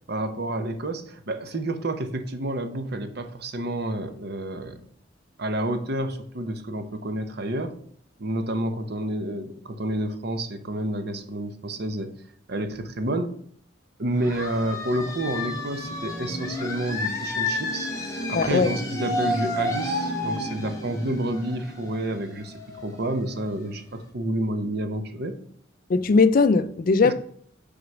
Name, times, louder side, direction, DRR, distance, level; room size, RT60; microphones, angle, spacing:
voice 1, 0.1-4.8 5.4-7.8 8.2-12.1 12.5-13.4 14.0-17.9 18.3-25.4 27.0-27.1, right 1 dB, 55° right, 0.8 m, -29 dB
sound 1, 14.2-23.6, left 1 dB, 15° left, 1.5 m, -31 dB
voice 2, 18.3-18.7 25.9-27.1, left 4 dB, 45° left, 0.4 m, -19 dB
6.3 x 4.0 x 5.9 m
head